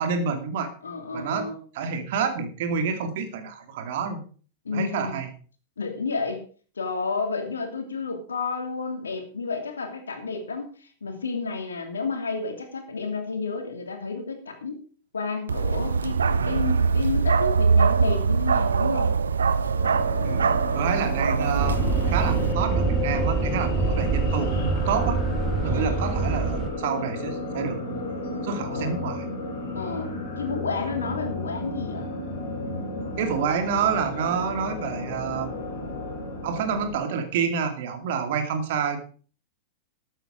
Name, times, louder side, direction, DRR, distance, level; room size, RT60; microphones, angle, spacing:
voice 1, 0.0-0.7 1.1-1.5 1.7-4.2 4.7-5.3 20.2-20.5 20.7-25.2 25.6-28.0 28.4-29.2 33.2-35.5 36.4-39.0, right 6 dB, 55° right, 7 dB, 2.4 m, -28 dB
voice 2, 0.8-1.6 4.6-5.2 5.8-6.4 6.8-14.8 15.1-19.1 25.6-26.0 28.7-29.0 29.7-32.1, left 4 dB, 75° left, 5 dB, 2.7 m, -31 dB
Bark, 15.5-22.5, right 5 dB, 75° right, 0.6 m, -23 dB
sound 1, 19.7-36.9, left 3 dB, 55° left, 4.7 m, -33 dB
sound 2, 21.6-26.7, right 4 dB, 30° right, 2.3 m, -25 dB
13.0 x 9.1 x 5.0 m, 0.40 s
figure-of-eight pair, 95°, 0 cm